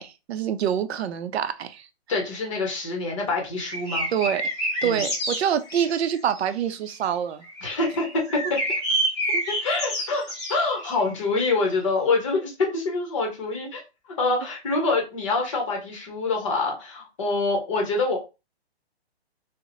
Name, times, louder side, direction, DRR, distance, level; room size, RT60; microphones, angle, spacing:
voice 1, 0.0-1.9 4.1-7.7 9.3-9.4, right 9 dB, 70° right, 0.5 m, -26 dB
voice 2, 2.1-4.1 4.8-5.0 7.6-8.4 9.5-10.2 10.5-13.8 14.2-18.2, left 3 dB, 30° left, 0.7 m, -25 dB
sound 1, 3.6-6.4 7.4-11.0, right 1 dB, 15° left, 1.3 m, -28 dB
2.7 x 2.0 x 2.6 m
hypercardioid pair, 165°, 33 cm